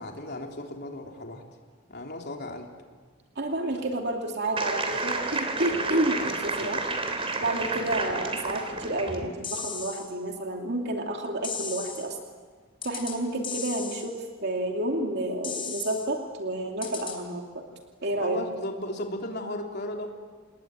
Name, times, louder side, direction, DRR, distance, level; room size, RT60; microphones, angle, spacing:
voice 1, 0.0-1.4 1.9-2.7 7.6-7.7 18.2-20.1, left 1 dB, 55° left, 2 dB, 3.5 m, -35 dB
voice 2, 3.4-12.2 12.8-14.2 14.4-17.6 18.0-18.4, right 1 dB, 55° right, 2 dB, 2.6 m, -30 dB
sound 1, 4.6-9.3, right 3 dB, 30° right, 3.1 m, -31 dB
sound 2, 9.4-10.1 11.4-12.1 12.8-13.2 13.4-14.1 15.4-16.1 16.8-17.2, left 6 dB, 25° left, 4.6 m, -36 dB
29.0 x 20.0 x 9.2 m, 1.5 s
head